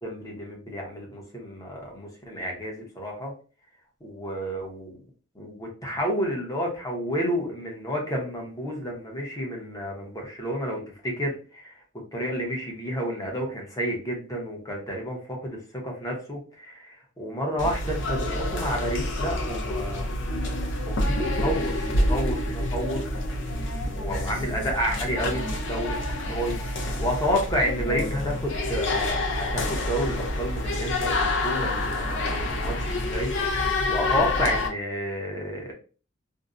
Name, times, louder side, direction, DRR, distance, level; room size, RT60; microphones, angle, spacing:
voice 1, 0.0-3.3 4.0-4.9 5.3-11.8 12.1-20.1 20.9-23.0 23.9-26.0 26.3-33.3 33.8-35.7, equal, 20° left, -1 dB, 0.8 m, -30 dB
sound 1, 17.6-34.7, left 1 dB, 65° left, 0.5 m, -27 dB
2.6 x 2.1 x 2.4 m, 0.37 s
head